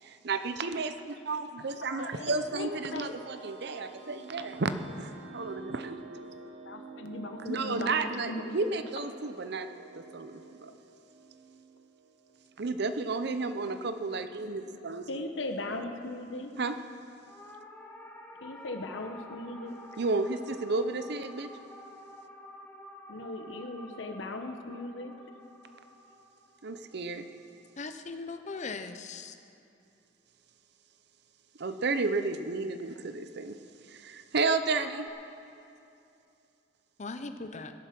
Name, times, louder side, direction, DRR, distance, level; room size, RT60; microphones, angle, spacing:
voice 1, 0.0-4.7 5.0-6.3 7.4-9.7 9.9-10.7 12.6-15.2 16.6-16.7 20.0-21.5 26.6-27.3 31.6-33.6 33.8-35.1, right 3 dB, 60° right, 10 dB, 0.7 m, -32 dB
sound 1, 1.8-12.6, right 3 dB, 90° right, 1.1 m, -49 dB
voice 2, 1.9-3.2 6.6-8.6 15.1-16.5 18.4-19.8 23.1-25.1, left 2 dB, 85° left, 5 dB, 1.2 m, -38 dB
sound 2, 17.3-27.8 34.7-35.1, left 1 dB, 10° left, 1.3 m, -50 dB
voice 3, 27.8-29.3 37.0-37.7, left 3 dB, 40° left, 9 dB, 0.8 m, -39 dB
16.5 x 10.5 x 6.0 m, 2.7 s
head